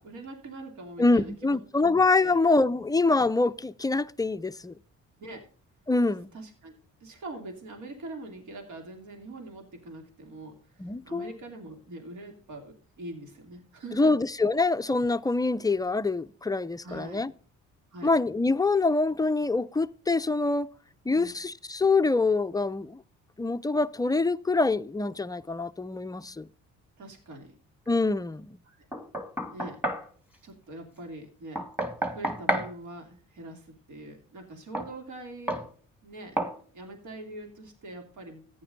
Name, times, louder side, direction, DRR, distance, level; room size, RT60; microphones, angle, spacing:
voice 1, 0.0-1.9 2.2-2.4 5.2-5.5 6.3-6.7 7.0-14.1 16.8-17.2 17.9-18.1 21.0-21.3 27.0-27.5 28.6-28.8 29.5-29.8 30.4-31.6 32.0-35.6 36.0-36.4 36.7-38.6, right 2 dB, 75° right, 2.8 m, -43 dB
voice 2, 1.0-4.7 5.9-6.3 10.8-11.3 13.9-17.3 18.0-20.7 21.1-23.0 23.4-26.5 27.9-28.6, left 3 dB, 15° left, 0.4 m, -25 dB
Knock, 28.9-30.1 31.6-32.7 34.7-34.9 35.5-35.7 36.4-36.6, right 1 dB, 5° right, 1.8 m, -30 dB
14.5 x 10.0 x 2.6 m
cardioid pair, 90°, 30 cm